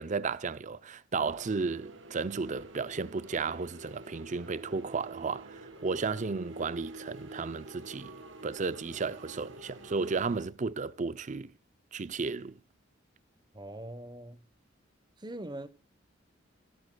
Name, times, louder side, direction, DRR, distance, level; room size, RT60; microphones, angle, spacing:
voice 1, 0.0-8.1 8.4-11.5 11.9-12.6, right 4 dB, 40° right, 0.5 m, -34 dB
sound 1, 1.1-10.5, right 2 dB, 75° right, 2.1 m, -48 dB
voice 2, 13.5-14.4 15.2-15.7, right 1 dB, 20° right, 1.0 m, -42 dB
16.5 x 11.5 x 2.3 m
head